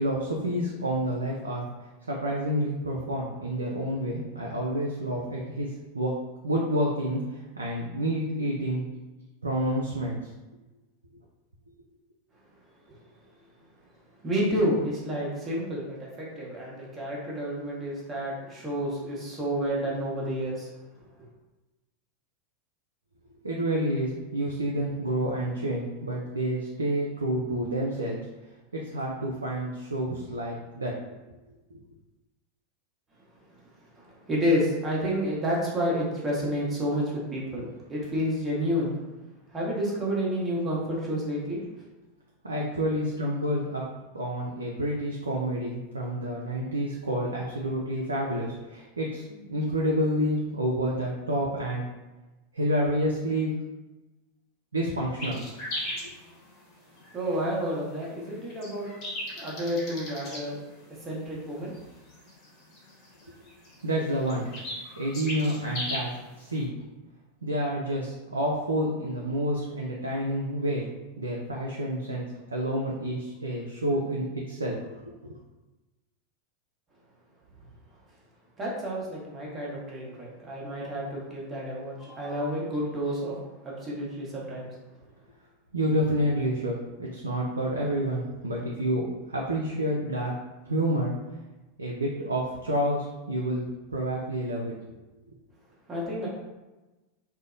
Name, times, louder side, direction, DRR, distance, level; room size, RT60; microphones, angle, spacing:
voice 1, 0.0-1.7 2.1-5.7 5.9-6.1 6.4-8.9 9.4-10.2 23.4-28.2 28.7-30.9 31.7-31.8 42.4-43.8 44.1-51.8 52.5-53.5 54.7-55.5 63.8-64.5 65.0-66.1 66.4-66.7 67.4-70.9 71.2-72.2 72.5-74.8 85.7-90.4 90.7-91.1 91.8-94.7, equal, 90° right, -3 dB, 0.3 m, -29 dB
voice 2, 14.2-20.7 33.9-38.9 39.5-41.6 57.1-58.9 59.4-60.6 61.0-61.7 78.6-83.4 83.6-84.7 95.9-96.3, equal, 20° right, -5 dB, 1.0 m, -30 dB
sound 1, 55.2-66.6, left 1 dB, 45° left, 1.0 m, -38 dB
2.6 x 2.0 x 2.5 m, 1.1 s
hypercardioid pair, 90°, 0 cm